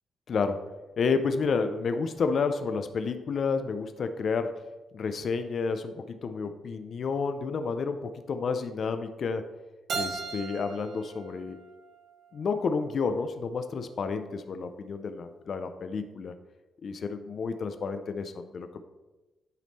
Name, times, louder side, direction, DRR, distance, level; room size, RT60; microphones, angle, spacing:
voice 1, 0.3-0.6 1.0-4.6 4.9-9.4 9.9-11.6 12.3-16.3 16.8-18.8, left 5 dB, 45° left, 8 dB, 0.4 m, -30 dB
Keyboard (musical), 9.9-12.7, right 4 dB, 55° right, 0.8 m, -38 dB
9.1 x 3.5 x 4.0 m, 1.1 s
cardioid pair, 155°, 0 cm